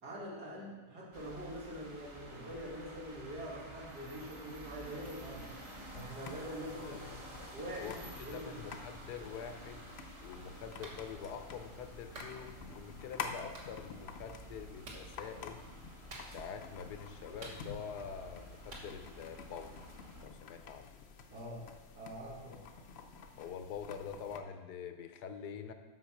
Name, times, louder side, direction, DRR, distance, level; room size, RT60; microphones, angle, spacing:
voice 1, 0.0-5.5 5.9-7.0 7.5-8.0 8.2-8.6 21.3-21.7 22.0-22.7, equal, 85° right, -5 dB, 2.9 m, -44 dB
sound 1, 1.1-20.2, right 1 dB, 20° right, 0.9 m, -51 dB
sound 2, 5.0-24.4, left 5 dB, 55° left, 0.7 m, -50 dB
voice 2, 6.7-7.2 7.8-9.9 10.2-15.6 16.3-19.7 20.2-20.9 23.4-25.7, left 7 dB, 85° left, 8 dB, 1.3 m, -45 dB
Clapping, 10.8-11.0 12.1-12.4 13.5-13.7 14.8-15.1 16.1-16.6 17.4-18.0 18.7-18.9, right 2 dB, 50° right, 1.6 m, -48 dB
8.1 x 5.8 x 6.0 m, 1.3 s
omnidirectional pair, 1.7 m